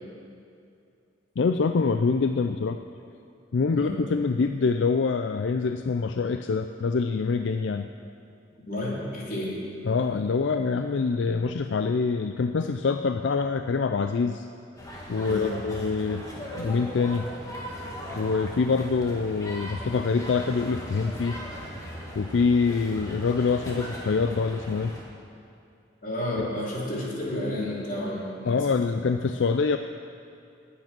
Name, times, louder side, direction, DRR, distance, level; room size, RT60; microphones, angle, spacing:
voice 1, 1.4-2.8 3.5-7.9 9.8-14.5 15.1-16.2 16.6-17.3 18.2-21.4 22.1-24.9 26.4-26.5 28.5-29.8, left 4 dB, 80° left, 8 dB, 0.4 m, -25 dB
voice 2, 3.7-4.0 8.6-9.5 15.2-15.5 26.0-28.7, left 1 dB, 50° left, -5 dB, 3.5 m, -31 dB
sound 1, 14.8-25.0, equal, 20° left, 2.2 m, -38 dB
19.5 x 8.6 x 6.1 m, 2.5 s
head